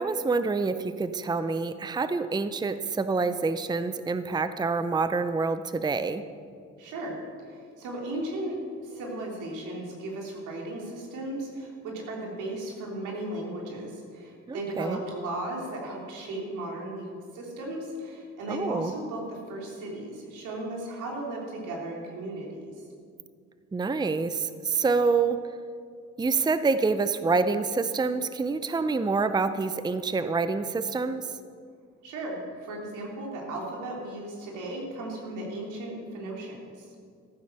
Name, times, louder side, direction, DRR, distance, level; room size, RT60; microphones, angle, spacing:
voice 1, 0.0-6.2 14.5-15.0 18.5-18.9 23.7-25.4 26.2-31.3, right 4 dB, 15° right, 11 dB, 0.6 m, -27 dB
voice 2, 6.8-7.2 7.5-22.7 32.0-36.9, right 1 dB, 85° right, -1 dB, 3.3 m, -36 dB
14.5 x 9.4 x 6.6 m, 2.2 s
cardioid pair, 90°, 30 cm